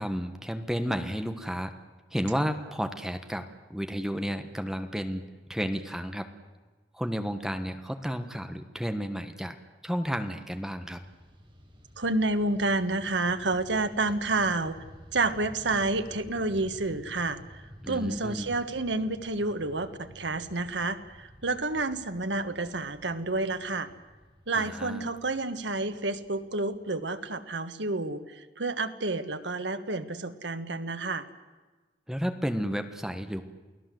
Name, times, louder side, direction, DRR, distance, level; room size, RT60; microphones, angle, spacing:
voice 1, 0.0-1.7 2.1-5.2 5.5-6.3 6.9-9.6 9.8-11.0 17.8-18.5 24.5-25.0 32.1-33.4, equal, 5° right, 7 dB, 1.3 m, -32 dB
Fixed-wing aircraft airplane, 10.1-27.5, equal, 30° right, 6.1 m, -52 dB
voice 2, 12.0-14.8 15.1-23.9 24.5-31.3, right 2 dB, 85° right, 9 dB, 1.5 m, -29 dB
29.0 x 18.5 x 7.8 m, 1.3 s
head